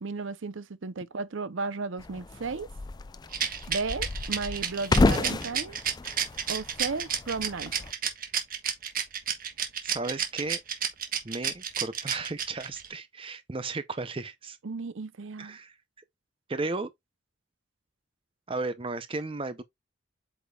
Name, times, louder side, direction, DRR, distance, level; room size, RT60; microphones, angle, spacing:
voice 1, 0.0-2.7 3.7-5.8 6.5-7.7 14.6-15.6, right 4 dB, 70° right, 0.7 m, -34 dB
sound 1, 2.0-7.9, left 3 dB, 20° left, 0.3 m, -30 dB
Rattle, 3.3-12.9, right 8 dB, 45° right, 1.4 m, -30 dB
voice 2, 9.8-10.6 11.2-14.6 15.4-15.7 16.5-16.9 18.5-19.6, right 3 dB, 25° right, 0.6 m, -34 dB
8.0 x 5.1 x 2.3 m
head